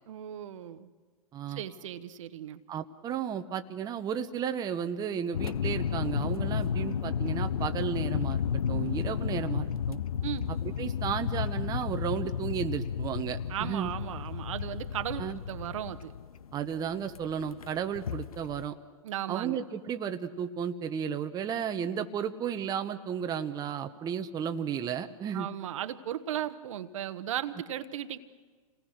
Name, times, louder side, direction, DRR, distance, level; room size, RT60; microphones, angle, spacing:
voice 1, 0.1-0.9 1.5-2.6 10.2-10.5 13.5-16.1 19.0-19.6 25.3-28.2, right 11 dB, 60° right, 11 dB, 1.1 m, -36 dB
voice 2, 1.3-1.6 2.7-10.0 10.6-13.9 15.2-15.4 16.5-18.8 19.3-25.5, right 8 dB, 20° right, 7 dB, 0.9 m, -33 dB
sound 1, 5.3-18.7, left 7 dB, 80° left, 0.7 m, -32 dB
27.5 x 19.0 x 6.4 m, 1.5 s
hypercardioid pair, 120°, 18 cm